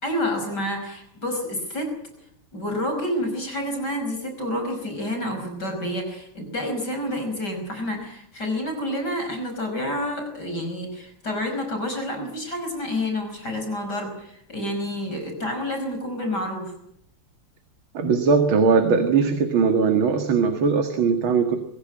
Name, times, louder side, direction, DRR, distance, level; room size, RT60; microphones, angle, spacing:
voice 1, 0.0-1.9 2.5-16.7, left 1 dB, 50° left, 4 dB, 6.0 m, -29 dB
voice 2, 17.9-21.6, right 5 dB, 70° right, 6 dB, 2.7 m, -20 dB
23.0 x 16.0 x 8.9 m, 0.73 s
omnidirectional pair, 2.4 m